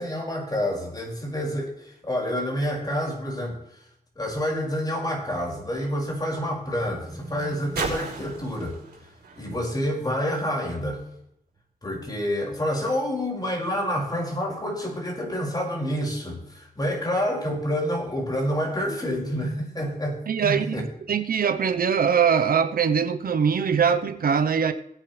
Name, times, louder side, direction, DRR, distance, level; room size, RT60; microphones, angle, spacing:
voice 1, 0.0-3.8 4.2-8.8 9.4-11.0 11.8-20.8, equal, 25° left, 5.5 m, -28 dB
sound 1, 6.0-10.7 11.6-11.7, right 4 dB, 85° right, 4.2 m, -39 dB
voice 2, 20.3-24.7, right 7 dB, 65° right, 0.8 m, -22 dB
19.0 x 9.3 x 3.3 m
wide cardioid pair, 100°, 16 cm